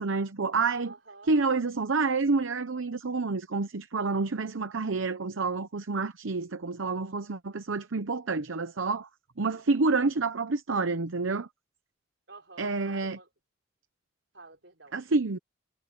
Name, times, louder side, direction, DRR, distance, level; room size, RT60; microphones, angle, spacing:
voice 1, 0.0-0.9 1.3-9.1 9.4-11.5 12.6-13.2 14.9-15.4, right 3 dB, 85° right, 0.8 m, -28 dB
voice 2, 0.8-1.3 12.3-13.3 14.3-14.9, right 3 dB, 70° right, 4.2 m, -50 dB
head